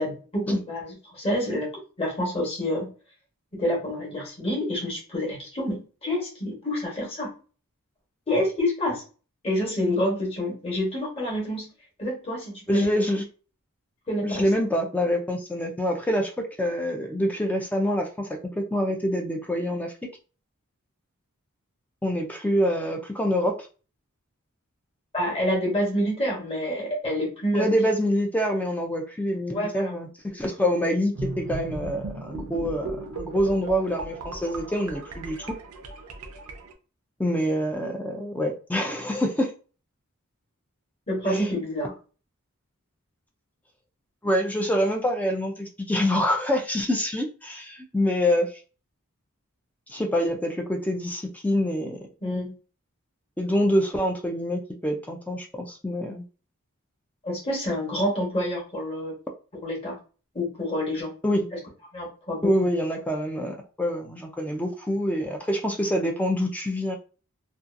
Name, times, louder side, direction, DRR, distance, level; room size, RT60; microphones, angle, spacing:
voice 1, 0.0-2.9 3.5-7.3 8.3-9.0 9.4-11.7 12.0-12.9 14.1-14.4 25.1-27.7 29.5-29.9 41.1-41.9 52.2-52.5 57.2-59.2 59.6-60.0 60.3-61.1 61.9-62.5, left 1 dB, 25° left, -3 dB, 1.1 m, -28 dB
voice 2, 12.7-13.2 14.2-18.3 18.6-20.1 22.0-23.7 27.5-35.5 37.2-39.5 41.3-41.5 44.2-48.5 49.9-52.0 53.4-56.2 61.2-61.5 62.4-67.0, equal, 5° left, 2 dB, 0.3 m, -26 dB
sound 1, 31.1-36.7, right 2 dB, 85° right, 0.5 m, -36 dB
2.6 x 2.3 x 2.4 m, 0.36 s
head